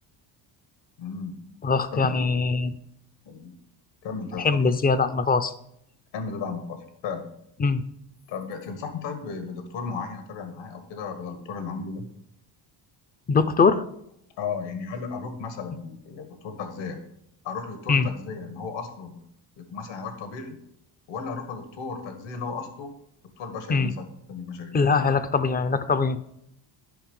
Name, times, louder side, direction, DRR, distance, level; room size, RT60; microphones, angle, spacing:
voice 1, 1.0-1.3 1.9-2.2 3.2-3.5 4.0-4.6 6.1-7.3 8.3-12.0 14.4-17.0 17.4-19.2 19.6-20.6 21.1-22.9 23.4-24.8, left 5 dB, 80° left, 7 dB, 1.7 m, -35 dB
voice 2, 1.6-2.7 4.4-5.5 7.6-7.8 13.3-13.8 17.9-18.1 23.7-23.9 24.7-26.2, left 4 dB, 20° left, 13 dB, 0.4 m, -22 dB
10.0 x 5.5 x 5.3 m, 0.75 s
cardioid pair, 130°, 43 cm